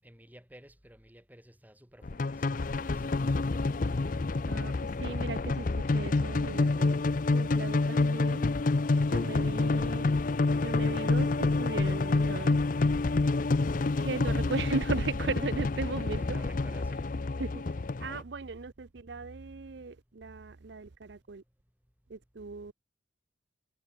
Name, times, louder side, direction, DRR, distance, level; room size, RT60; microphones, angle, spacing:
voice 1, 0.0-3.7 16.2-17.5, equal, 10° right, 5.7 m, -54 dB
sound 1, 2.0-18.2, left 3 dB, 40° left, 0.5 m, -28 dB
voice 2, 4.5-7.0 7.3-8.5 9.1-10.1 10.4-12.6 14.0-16.4 17.4-17.5 18.0-21.4 22.1-22.7, right 4 dB, 60° right, 0.6 m, -37 dB
head